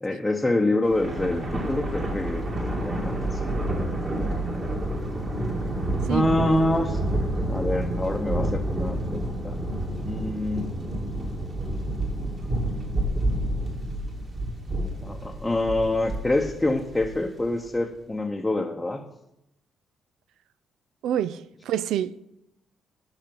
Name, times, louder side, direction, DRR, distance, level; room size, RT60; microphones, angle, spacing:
voice 1, 0.0-3.6 6.1-7.0 7.5-9.5 10.0-10.7 15.0-19.0, left 1 dB, 10° left, 0.8 m, -26 dB
Thunder, 0.8-17.4, right 1 dB, 40° right, 2.2 m, -29 dB
voice 2, 21.0-22.1, right 10 dB, 85° right, 0.3 m, -27 dB
8.7 x 5.9 x 5.3 m
cardioid pair, 90°, 0 cm